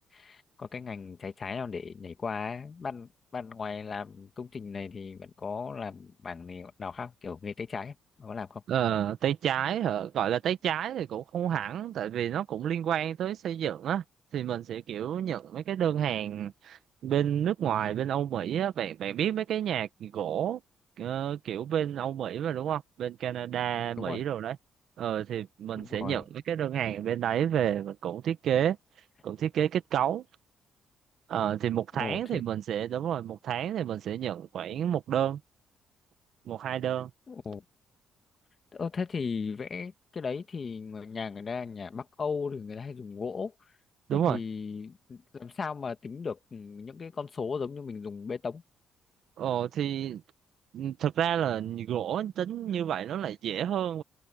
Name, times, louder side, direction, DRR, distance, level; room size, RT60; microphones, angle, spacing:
voice 1, 0.0-8.6 24.0-24.2 25.8-26.2 32.0-32.4 37.3-37.6 38.7-43.5 44.1-48.6, left 5 dB, 40° left, 1.7 m, -37 dB
voice 2, 8.7-14.0 14.3-20.6 21.0-24.6 25.0-28.8 29.2-30.2 31.3-35.4 36.4-37.1 44.1-44.4 49.4-50.2 50.7-54.0, right 10 dB, 70° right, 1.5 m, -30 dB
cardioid pair, 90°, 0 cm